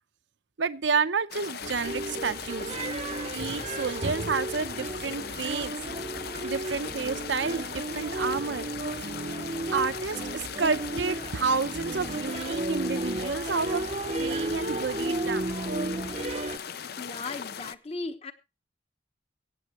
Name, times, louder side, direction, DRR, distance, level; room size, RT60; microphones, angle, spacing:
voice 1, 0.6-2.7 3.3-5.8 6.4-8.7 9.7-13.8 14.2-15.5, right 5 dB, 80° right, 0.7 m, -30 dB
sound 1, 1.3-17.7, left 7 dB, 55° left, 0.6 m, -39 dB
sound 2, 1.6-16.6, right 2 dB, 35° right, 0.7 m, -33 dB
voice 2, 17.0-18.3, left 3 dB, 35° left, 1.1 m, -36 dB
24.0 x 8.5 x 3.0 m
head